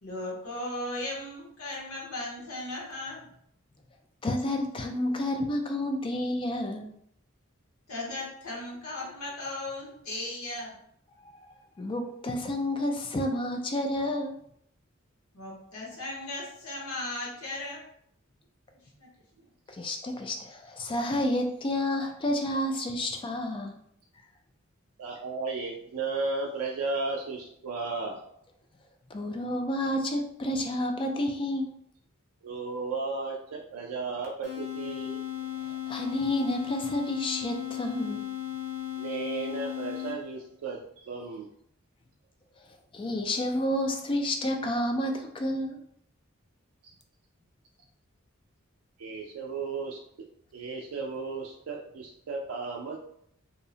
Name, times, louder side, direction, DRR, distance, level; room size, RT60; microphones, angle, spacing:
voice 1, 0.0-3.3 7.9-10.7 15.3-17.8 19.0-19.1, left 2 dB, 85° left, -3 dB, 0.9 m, -37 dB
voice 2, 4.2-6.9 11.2-11.3 11.8-14.3 19.7-23.8 29.1-31.7 35.9-38.3 42.9-45.8, left 1 dB, 25° left, 4 dB, 0.3 m, -30 dB
voice 3, 25.0-28.3 32.4-35.2 39.0-41.5 46.8-46.9 49.0-50.0 50.5-53.0, right 3 dB, 80° right, -1 dB, 0.4 m, -34 dB
sound 1, 34.4-40.5, left 12 dB, 55° left, 0.7 m, -36 dB
2.7 x 2.0 x 2.6 m, 0.69 s
head